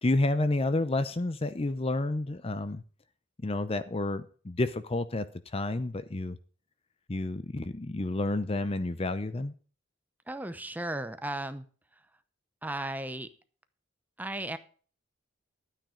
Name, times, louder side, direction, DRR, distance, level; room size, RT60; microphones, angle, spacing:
voice 1, 0.0-2.8 3.4-5.3 5.5-6.4 7.1-9.5, left 2 dB, 30° left, 13 dB, 0.6 m, -30 dB
voice 2, 10.3-11.6 12.6-13.3 14.2-14.6, right 1 dB, 10° right, 11 dB, 0.8 m, -35 dB
13.0 x 9.2 x 5.0 m, 0.41 s
head